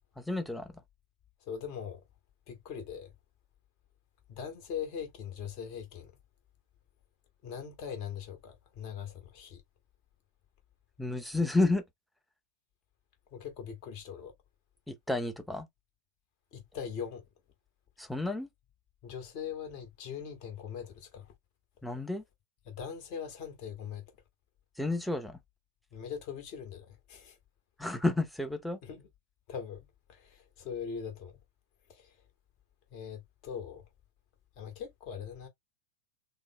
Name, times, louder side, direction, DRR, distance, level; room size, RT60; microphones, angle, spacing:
voice 1, 0.2-0.7 11.0-11.8 14.9-15.7 18.0-18.5 21.8-22.2 24.8-25.4 27.8-28.8, left 2 dB, ahead, 0.6 m, -31 dB
voice 2, 1.4-2.0 2.5-3.1 4.3-6.1 7.4-9.6 13.3-14.3 16.5-17.2 19.0-21.3 22.7-24.0 25.9-27.4 28.8-29.1 29.5-31.3 31.9-32.1 32.9-33.8 34.6-35.5, left 7 dB, 40° left, 0.9 m, -41 dB
3.5 x 2.0 x 3.5 m
figure-of-eight pair, 90°, 0 cm